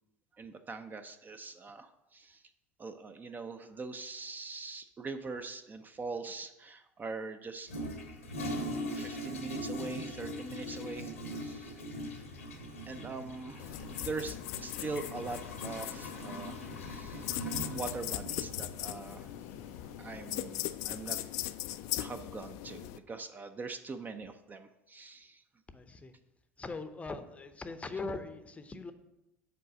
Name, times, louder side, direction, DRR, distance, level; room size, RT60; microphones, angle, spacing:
voice 1, 0.4-2.4 2.8-7.7 8.9-11.7 12.9-16.6 16.8-17.3 17.7-19.3 19.8-21.2 22.0-25.4, right 4 dB, 25° right, 8 dB, 0.5 m, -42 dB
Toilet flush, 7.7-20.5, equal, 90° left, 1.0 m, -41 dB
sound 1, 13.6-23.0, left 15 dB, 55° left, 0.3 m, -39 dB
voice 2, 25.7-26.1 26.6-28.9, left 3 dB, 20° left, 10 dB, 0.6 m, -41 dB
6.7 x 3.9 x 6.4 m, 0.93 s
figure-of-eight pair, 70°, 7 cm